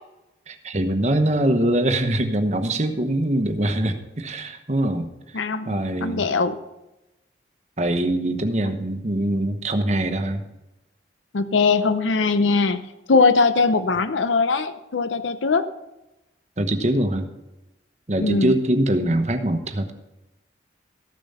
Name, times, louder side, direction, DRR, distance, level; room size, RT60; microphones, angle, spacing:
voice 1, 0.5-5.4 5.6-6.3 7.8-10.4 16.6-17.3 18.1-19.9, right 1 dB, 40° right, 7 dB, 1.0 m, -23 dB
voice 2, 5.3-6.6 11.3-12.8 13.1-15.7 18.2-18.5, left 4 dB, 90° left, 11 dB, 0.6 m, -20 dB
14.0 x 7.0 x 5.5 m, 0.94 s
head